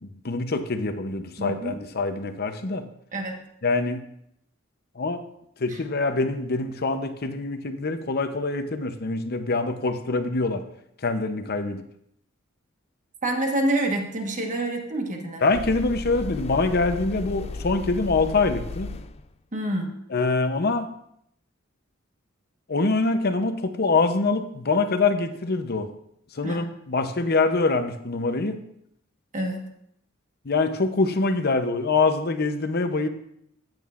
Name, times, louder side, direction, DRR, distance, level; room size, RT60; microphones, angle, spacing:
voice 1, 0.0-2.9 3.6-4.0 5.0-5.2 5.6-10.6 11.0-11.8 15.4-18.9 20.1-20.9 22.7-25.9 26.3-28.6 30.4-33.1, left 3 dB, 50° left, 8 dB, 0.8 m, -24 dB
voice 2, 1.4-1.8 3.1-3.4 5.7-5.8 13.2-15.4 19.5-19.9 26.4-26.6 29.3-29.7, right 1 dB, 40° right, 3 dB, 1.4 m, -27 dB
sound 1, 15.5-19.3, left 3 dB, 30° left, 0.4 m, -35 dB
14.0 x 9.1 x 2.5 m, 0.73 s
head